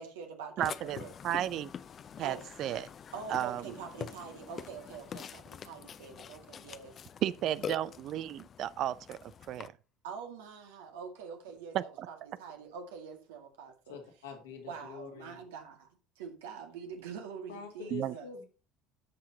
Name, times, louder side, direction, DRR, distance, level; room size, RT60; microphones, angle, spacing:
voice 1, 0.0-1.1 2.2-2.4 3.1-7.0 7.6-7.7 10.0-14.0 14.7-15.9 16.2-18.3, right 6 dB, 75° right, 2.0 m, -45 dB
Burping eructation, 0.6-9.7, left 8 dB, 40° left, 0.5 m, -45 dB
voice 2, 0.6-1.7 2.2-2.9 3.3-3.7 7.2-9.2 9.5-9.7 11.7-12.1 17.9-18.1, right 12 dB, 55° right, 0.5 m, -33 dB
voice 3, 13.9-15.4 17.5-18.4, left 6 dB, 80° left, 2.6 m, -45 dB
13.5 x 5.7 x 2.8 m
hypercardioid pair, 65°, 0 cm